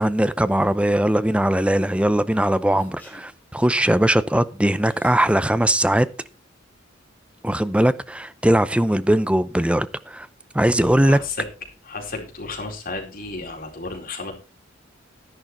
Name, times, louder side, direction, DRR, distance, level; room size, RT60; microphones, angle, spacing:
voice 1, 0.0-6.1 7.4-10.3 10.5-11.2, right 1 dB, 5° right, 0.6 m, -20 dB
Human voice, 2.3-3.3 4.9-5.5, left 1 dB, 10° left, 4.8 m, -47 dB
voice 2, 10.8-11.4 11.9-14.3, left 3 dB, 45° left, 4.3 m, -33 dB
11.5 x 10.5 x 4.3 m
head